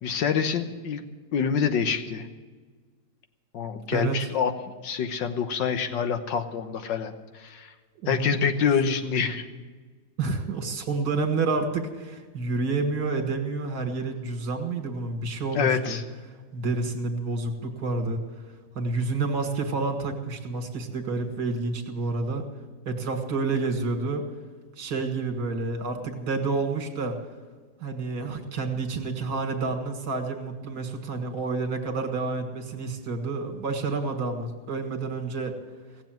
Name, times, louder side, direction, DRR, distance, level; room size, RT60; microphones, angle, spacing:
voice 1, 0.0-1.0 1.3-2.3 3.5-4.5 4.8-7.7 8.1-9.5 14.0-14.2 15.5-16.0, left 6 dB, 70° left, 8 dB, 1.7 m, -26 dB
voice 2, 3.9-4.3 8.0-8.4 10.2-16.0 16.5-18.2 18.8-22.4 22.9-24.2 24.8-27.2 27.8-35.6, right 3 dB, 55° right, 5 dB, 2.3 m, -29 dB
17.5 x 7.5 x 9.1 m, 1.4 s
omnidirectional pair, 2.1 m